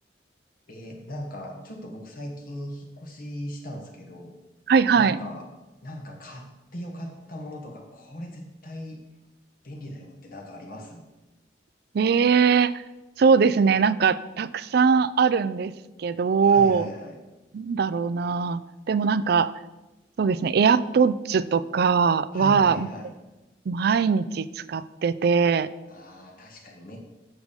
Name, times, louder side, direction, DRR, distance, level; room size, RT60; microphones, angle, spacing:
voice 1, 0.7-4.3 4.9-5.5 5.8-9.0 9.6-11.0 16.4-17.2 22.3-23.1 25.9-27.0, equal, 55° left, 1 dB, 1.4 m, -39 dB
voice 2, 4.7-5.2 11.9-12.8 13.2-15.7 16.0-16.8 17.5-19.5 20.2-22.9 23.7-25.7, right 5 dB, 60° right, 16 dB, 0.4 m, -21 dB
8.0 x 6.8 x 5.3 m, 1.1 s
head